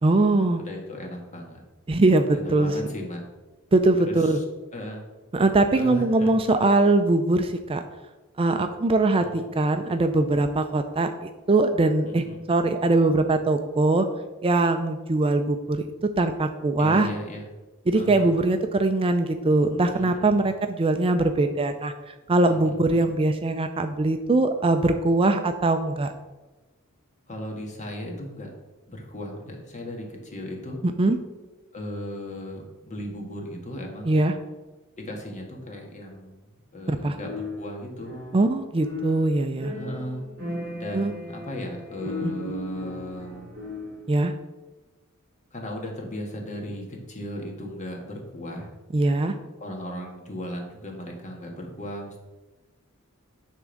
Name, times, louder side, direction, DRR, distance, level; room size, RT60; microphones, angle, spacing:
voice 1, 0.0-0.6 1.9-2.7 3.7-4.4 5.3-7.8 8.4-14.0 14.4-15.8 16.2-17.1 17.9-26.1 31.0-31.2 34.1-34.3 36.9-37.2 38.3-39.7 40.9-41.1 42.2-42.3 44.1-44.3 48.9-49.3, right 2 dB, 25° right, 7 dB, 0.4 m, -22 dB
voice 2, 0.5-1.6 2.3-3.2 4.1-4.4 4.7-5.0 5.7-6.4 9.2-9.5 12.0-12.4 16.8-17.5 17.9-18.3 19.9-20.3 22.5-22.7 27.3-28.5 28.9-30.8 31.7-34.2 35.0-36.4 36.7-38.2 39.7-40.2 40.7-43.5 45.5-48.7 49.6-52.2, left 1 dB, 35° left, 0 dB, 1.6 m, -36 dB
sound 1, 37.2-38.5 38.8-44.1, left 2 dB, 45° right, 2.5 m, -36 dB
10.0 x 3.6 x 6.4 m, 1.2 s
head